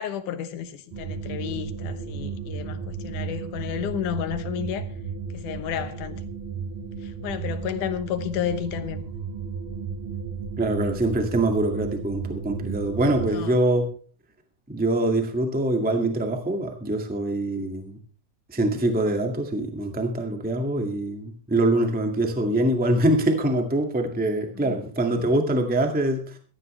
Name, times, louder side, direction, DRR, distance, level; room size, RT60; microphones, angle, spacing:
voice 1, 0.0-4.9 5.3-6.2 7.0-9.0 13.3-13.6 24.6-24.8, left 9 dB, 80° left, 2.6 m, -31 dB
sound 1, 0.9-13.4, right 6 dB, 65° right, 5.9 m, -34 dB
voice 2, 10.6-13.8 14.7-18.0 18.5-26.4, right 1 dB, 5° right, 1.2 m, -24 dB
17.0 x 14.0 x 3.3 m
omnidirectional pair, 3.6 m